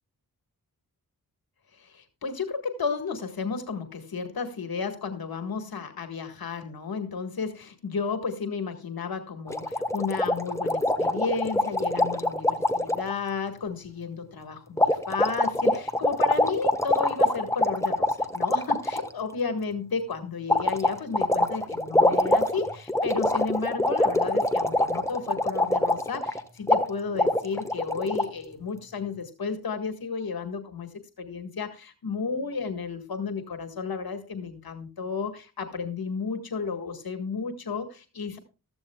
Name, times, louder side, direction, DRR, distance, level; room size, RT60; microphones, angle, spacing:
voice 1, 1.7-30.9 31.2-38.4, left 5 dB, 80° left, 7 dB, 1.7 m, -33 dB
sound 1, 9.5-13.1 14.8-19.1 20.5-26.4 26.7-26.8 27.2-28.2, left 1 dB, 10° left, 1.2 m, -24 dB
15.0 x 14.0 x 2.3 m, 0.31 s
wide cardioid pair, 120°, 35 cm